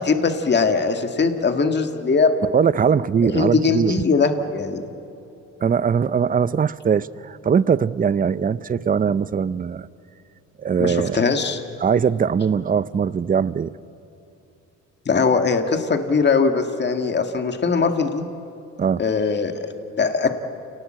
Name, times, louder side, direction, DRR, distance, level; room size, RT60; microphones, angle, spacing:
voice 1, 0.0-2.3 3.2-4.8 10.8-11.6 15.1-18.2 19.0-19.7 20.0-20.3, left 4 dB, 35° left, 6 dB, 1.8 m, -20 dB
voice 2, 2.4-3.9 5.6-9.9 10.6-11.2 11.8-13.8 18.8-19.0, right 7 dB, 30° right, 17 dB, 0.6 m, -21 dB
29.0 x 19.0 x 7.7 m, 2.8 s
cardioid pair, 90°, 30 cm